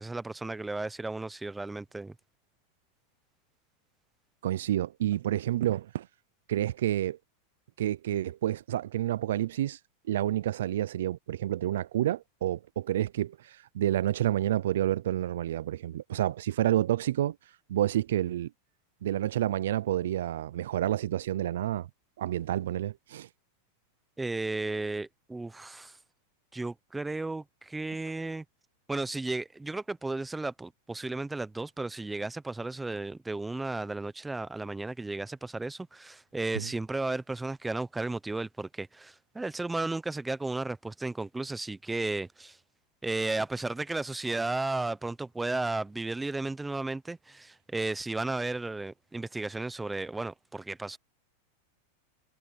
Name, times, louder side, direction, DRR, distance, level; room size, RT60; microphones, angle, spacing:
voice 1, 0.0-2.1 24.2-26.0 26.5-28.4 28.9-42.6 43.0-51.0, right 2 dB, 5° right, 0.6 m, -34 dB
voice 2, 4.4-6.1 6.5-7.2 7.8-9.8 10.1-17.4 17.7-18.5 19.0-21.9 22.2-23.3 36.5-36.7, right 12 dB, 85° right, 0.4 m, -29 dB
supercardioid pair, 150°, 0 cm